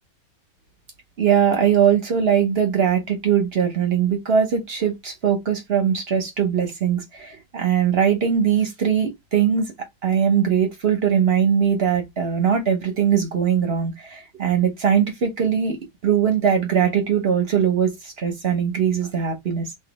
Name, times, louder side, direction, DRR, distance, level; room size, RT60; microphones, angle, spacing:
voice 1, 1.2-9.7 10.0-19.7, right 8 dB, 45° right, 0.9 m, -21 dB
3.2 x 2.5 x 3.9 m
omnidirectional pair, 1.8 m